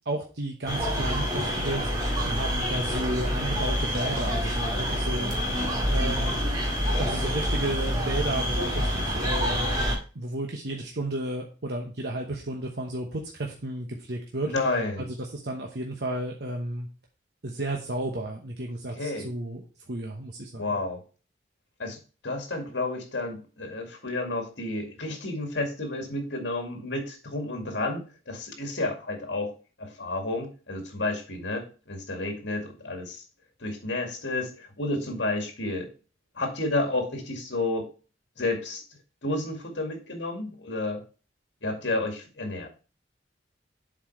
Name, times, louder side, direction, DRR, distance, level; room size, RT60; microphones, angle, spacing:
voice 1, 0.1-1.8 2.2-5.3 5.9-6.3 7.0-9.7 10.1-14.5 15.0-15.2 15.4-16.9 17.4-20.6, right 1 dB, 65° right, 1 dB, 1.0 m, -33 dB
sound 1, 0.7-10.0, equal, 20° right, 2.0 m, -27 dB
voice 2, 14.4-15.1 18.9-19.3 20.6-21.0 21.8-22.0 22.2-29.5 29.8-33.2 33.6-35.9 36.3-37.9 38.4-38.8 39.2-41.0 41.6-42.7, left 2 dB, 75° left, 3 dB, 2.2 m, -31 dB
7.4 x 4.5 x 4.6 m, 0.35 s
head